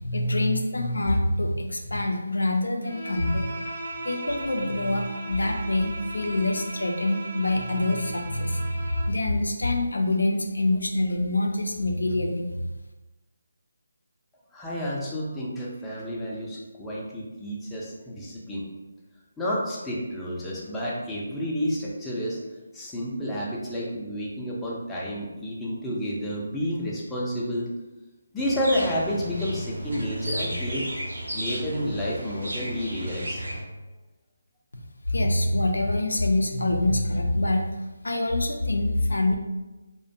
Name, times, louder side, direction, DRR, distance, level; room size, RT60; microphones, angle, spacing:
voice 1, 0.0-3.7 4.0-12.7 35.1-37.6 38.0-39.4, left 1 dB, 85° left, 3 dB, 0.4 m, -25 dB
Bowed string instrument, 2.8-9.2, right 2 dB, 55° right, 0.5 m, -37 dB
voice 2, 14.5-18.7 19.4-22.4 22.7-27.7 28.3-30.9 31.3-33.4, equal, 5° left, -7 dB, 0.4 m, -30 dB
sound 1, 28.4-33.6, equal, 75° right, 0.9 m, -33 dB
2.4 x 2.1 x 2.6 m, 1.1 s
figure-of-eight pair, 155°, 0 cm